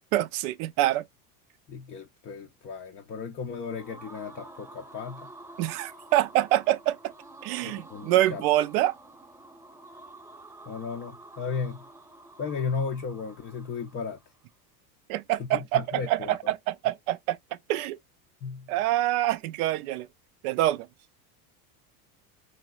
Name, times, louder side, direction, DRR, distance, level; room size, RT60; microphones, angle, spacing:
voice 1, 0.1-1.0 5.6-7.1 7.4-8.9 15.1-17.4 17.7-18.0 18.7-20.1 20.4-20.9, right 14 dB, 70° right, 0.5 m, -26 dB
voice 2, 1.7-5.3 7.6-8.4 10.7-11.8 12.4-14.2 15.5-16.5 18.4-18.7, left 5 dB, 25° left, 0.4 m, -35 dB
sound 1, 3.4-14.3, right 2 dB, 5° right, 0.8 m, -49 dB
3.1 x 2.6 x 2.3 m
supercardioid pair, 105°, 46 cm